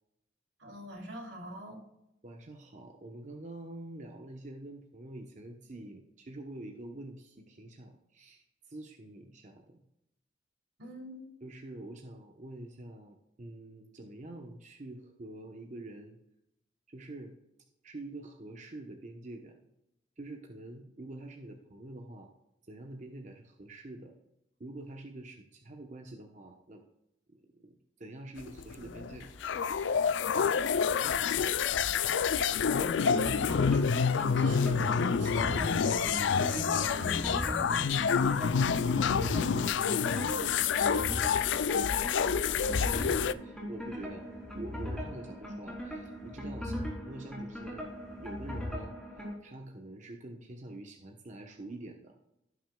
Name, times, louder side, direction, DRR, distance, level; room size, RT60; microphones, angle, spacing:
voice 1, 0.6-1.8 10.8-11.3 33.1-33.3 34.4-36.1 36.5-38.1 46.6-46.9, equal, 85° right, -1 dB, 2.9 m, -42 dB
voice 2, 2.2-9.8 11.4-16.2 16.9-17.3 17.8-19.6 20.2-22.3 22.6-24.1 24.6-26.8 27.3-29.3 39.3-41.3 42.7-44.3 44.5-47.9 48.2-52.1, right 2 dB, 40° right, 3 dB, 0.9 m, -46 dB
sound 1, 28.4-43.3, left 6 dB, 75° left, 0.4 m, -28 dB
sound 2, 28.4-38.1, equal, 50° left, 2.5 m, -55 dB
sound 3, 32.8-49.4, equal, 5° left, 2.9 m, -39 dB
16.0 x 6.2 x 2.3 m, 0.85 s
head